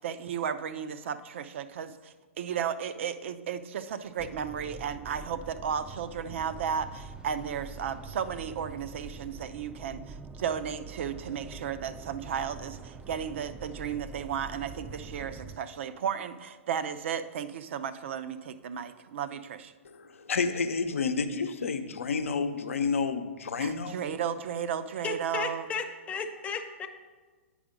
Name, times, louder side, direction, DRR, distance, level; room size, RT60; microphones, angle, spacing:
voice 1, 0.0-19.7 23.6-25.7, right 8 dB, 65° right, 12 dB, 0.5 m, -34 dB
sound 1, 4.2-15.6, right 4 dB, 10° right, 0.4 m, -45 dB
voice 2, 19.9-24.0, left 5 dB, 80° left, 8 dB, 0.7 m, -30 dB
voice 3, 25.0-26.9, left 5 dB, 20° left, 4 dB, 0.7 m, -34 dB
8.6 x 4.9 x 5.1 m, 1.4 s
hypercardioid pair, 120°, 7 cm